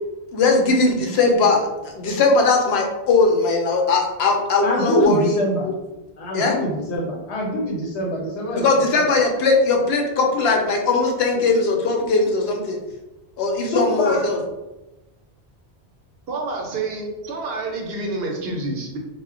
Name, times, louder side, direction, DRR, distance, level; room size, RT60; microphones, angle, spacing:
voice 1, 0.3-5.4 5.6-5.7 6.3-6.5 8.5-12.8 13.4-14.4, left 3 dB, 70° left, 1 dB, 0.8 m, -19 dB
voice 2, 4.6-5.7 6.2-9.2 13.6-14.2, equal, 90° left, -2 dB, 1.1 m, -25 dB
voice 3, 16.3-19.0, right 3 dB, 70° right, 0 dB, 0.8 m, -28 dB
2.1 x 2.1 x 3.6 m, 1.0 s
omnidirectional pair, 1.1 m